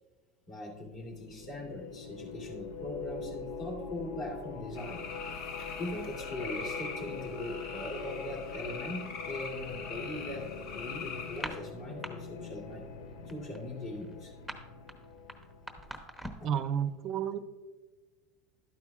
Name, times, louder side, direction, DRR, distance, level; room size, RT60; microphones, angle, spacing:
voice 1, 0.5-5.0 5.8-10.5 10.7-12.8 13.3-14.3 16.4-16.6, left 1 dB, 45° left, -1 dB, 2.8 m, -40 dB
sound 1, 0.8-16.2, left 5 dB, 85° left, 0.8 m, -44 dB
sound 2, 4.8-11.5, left 5 dB, 60° left, 1.2 m, -42 dB
sound 3, 11.3-12.1 12.4-12.7 13.0-16.6, right 1 dB, 5° left, 0.9 m, -42 dB
voice 2, 16.4-17.4, right 8 dB, 40° right, 12 dB, 0.5 m, -31 dB
12.0 x 9.2 x 2.4 m, 1.3 s
supercardioid pair, 130°, 0 cm